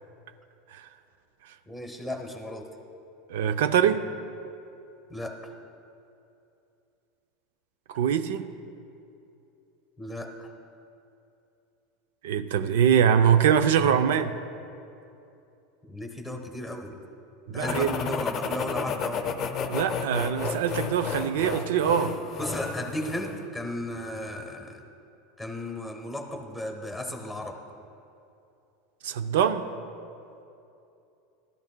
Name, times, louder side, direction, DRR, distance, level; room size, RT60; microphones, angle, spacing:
voice 1, 1.7-2.7 5.1-5.5 10.0-10.5 15.9-17.0 17.5-19.4 22.4-24.8 25.4-27.6, left 1 dB, ahead, 3 dB, 0.9 m, -35 dB
voice 2, 3.3-4.0 7.9-8.5 12.2-14.3 17.5-17.9 19.7-22.2 29.0-29.7, right 8 dB, 85° right, 10 dB, 0.5 m, -23 dB
sound 1, 17.6-23.4, left 6 dB, 30° left, 0.6 m, -32 dB
16.5 x 12.0 x 2.2 m, 2.7 s
supercardioid pair, 165°, 0 cm